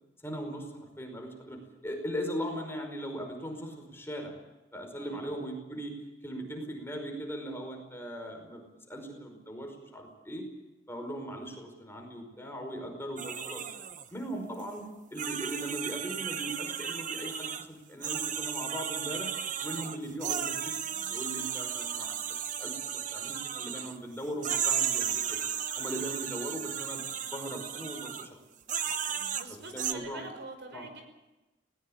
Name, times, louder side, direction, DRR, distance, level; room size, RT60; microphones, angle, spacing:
voice 1, 0.2-4.3 4.7-5.9 6.2-10.5 10.9-13.6 14.1-14.8 15.1-19.3 19.6-20.7 21.1-22.2 22.6-25.4 25.8-27.0 27.3-28.4 29.5-30.2 30.7-30.9, equal, 15° left, 3 dB, 5.1 m, -39 dB
voice 2, 5.0-5.3 20.8-21.1 29.1-31.0, right 2 dB, 65° right, 6 dB, 5.4 m, -46 dB
sound 1, 13.2-14.1 14.6-14.7 15.2-17.7 18.0-24.0 24.4-28.3 28.7-29.9, right 8 dB, 45° right, 1.2 m, -34 dB
20.0 x 19.0 x 8.8 m, 1.0 s
head